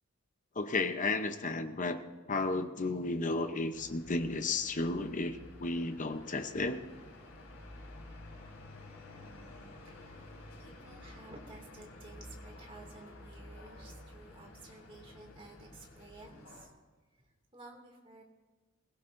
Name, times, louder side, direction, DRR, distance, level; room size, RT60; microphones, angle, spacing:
voice 1, 0.5-2.0 2.3-6.8, left 3 dB, 40° left, 8 dB, 0.8 m, -33 dB
sound 1, 3.7-16.7, left 1 dB, 85° left, 3.2 m, -51 dB
voice 2, 9.8-16.7 17.2-18.2, right 2 dB, 25° right, 0 dB, 2.4 m, -54 dB
22.0 x 16.5 x 2.7 m, 1.2 s
head